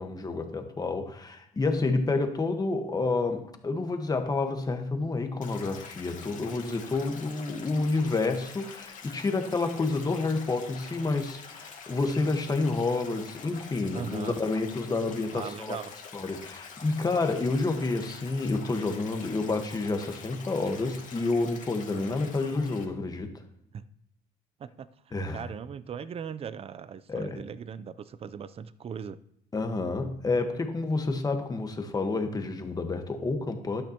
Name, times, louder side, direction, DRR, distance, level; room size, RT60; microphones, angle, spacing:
voice 1, 0.0-15.8 16.1-23.3 25.1-25.4 27.1-27.4 29.5-33.8, left 3 dB, 20° left, 6 dB, 1.3 m, -29 dB
Stream, 5.4-22.8, left 6 dB, 50° left, 2.1 m, -46 dB
voice 2, 13.9-14.4 15.3-15.9 23.7-23.8 24.6-24.9 25.3-29.2, right 7 dB, 35° right, 16 dB, 0.5 m, -39 dB
12.0 x 9.1 x 2.9 m, 0.77 s
cardioid pair, 110°, 17 cm